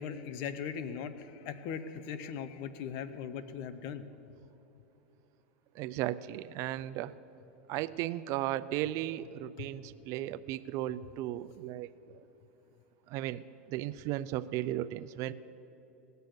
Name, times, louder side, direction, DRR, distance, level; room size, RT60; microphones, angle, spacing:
voice 1, 0.0-4.0 9.6-9.7, left 7 dB, 55° left, 13 dB, 0.9 m, -39 dB
voice 2, 5.7-7.1 7.7-12.2 13.1-15.3, right 14 dB, 50° right, 15 dB, 0.5 m, -35 dB
18.0 x 6.8 x 9.5 m, 3.0 s
supercardioid pair, 125°, 7 cm